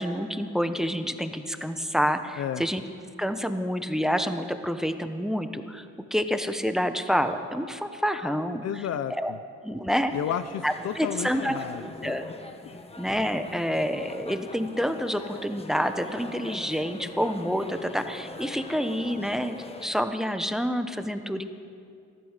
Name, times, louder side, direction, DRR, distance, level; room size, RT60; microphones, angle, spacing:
voice 1, 0.0-2.8 3.2-5.8 6.1-8.6 9.2-9.3 9.6-10.1 10.6-11.5 11.8-12.2 13.0-21.4, equal, ahead, 8 dB, 0.9 m, -28 dB
voice 2, 8.6-9.4 10.1-12.2 12.6-12.8, left 9 dB, 55° left, 13 dB, 0.6 m, -32 dB
sound 1, 10.1-20.0, left 2 dB, 20° left, 1.1 m, -42 dB
14.0 x 13.0 x 6.7 m, 2.4 s
cardioid pair, 90°, 30 cm